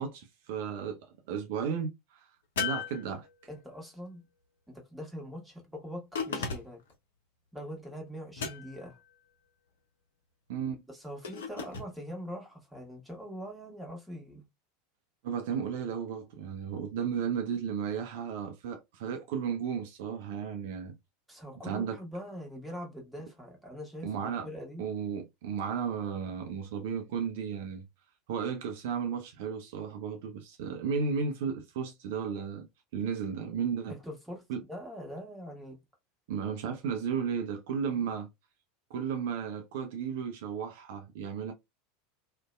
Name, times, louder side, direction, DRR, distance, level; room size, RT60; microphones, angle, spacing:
voice 1, 0.0-2.3 2.6-3.3 10.5-10.8 15.2-21.0 21.6-22.0 24.0-24.5 24.8-27.9 28.3-32.7 32.9-33.9 34.5-34.6 36.3-38.3 38.9-41.5, right 7 dB, 55° right, 0.4 m, -34 dB
sound 1, 2.6-3.7 6.1-6.9 8.4-9.0 11.2-11.9, left 6 dB, 65° left, 0.5 m, -36 dB
voice 2, 3.5-4.2 4.7-6.8 7.5-9.0 10.9-14.4 21.3-24.9 33.9-35.8, equal, 5° right, 1.1 m, -43 dB
2.6 x 2.1 x 2.2 m
figure-of-eight pair, 80°, 0 cm